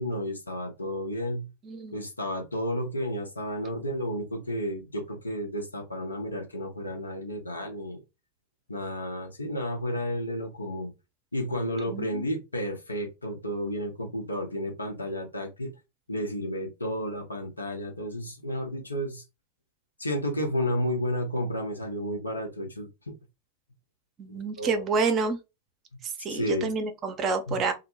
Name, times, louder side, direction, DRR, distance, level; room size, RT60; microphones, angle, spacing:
voice 1, 0.0-1.5 1.9-8.0 8.7-10.9 11.3-15.7 16.1-19.2 20.0-23.1 24.3-24.8 26.3-26.7 27.5-27.6, equal, 80° left, 0.8 m, -32 dB
voice 2, 1.6-2.0 11.9-12.2 24.2-25.4 26.2-27.7, right 4 dB, 30° right, 0.6 m, -28 dB
2.1 x 2.0 x 3.0 m
figure-of-eight pair, 90°, 0 cm